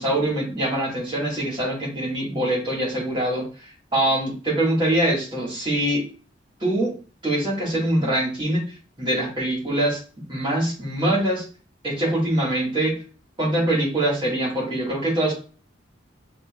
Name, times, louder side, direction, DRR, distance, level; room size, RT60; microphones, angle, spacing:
voice 1, 0.0-3.5 3.9-6.0 6.6-6.9 7.2-8.6 9.0-10.0 10.3-11.4 11.8-12.9 13.4-15.3, right 1 dB, 25° right, -5 dB, 2.1 m, -23 dB
6.5 x 3.0 x 2.5 m, 0.37 s
head